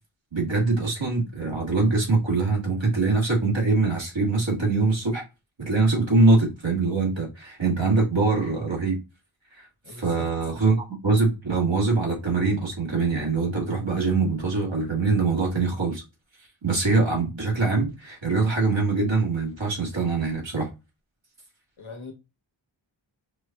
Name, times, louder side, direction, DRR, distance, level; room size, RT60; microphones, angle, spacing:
voice 1, 0.3-5.2 5.6-9.0 9.5-9.6 10.0-16.0 16.6-20.7, right 3 dB, 65° right, 1.7 m, -23 dB
voice 2, 9.8-10.3 21.8-22.1, left 4 dB, 75° left, 1.1 m, -40 dB
4.8 x 2.7 x 2.3 m
wide cardioid pair, 40°, 49 cm